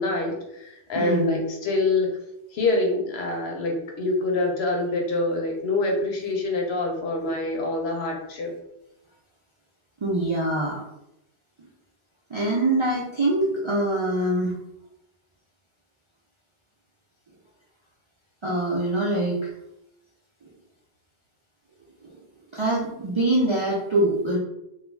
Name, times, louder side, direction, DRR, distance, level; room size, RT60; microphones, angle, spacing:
voice 1, 0.0-2.1 2.5-8.5, left 2 dB, 75° left, 0 dB, 0.9 m, -26 dB
voice 2, 1.0-1.4 10.0-10.8 12.3-14.5 18.4-19.5 22.0-22.2 22.5-24.4, right 1 dB, 50° right, -5 dB, 0.3 m, -24 dB
2.4 x 2.2 x 3.1 m, 0.84 s
omnidirectional pair, 1.1 m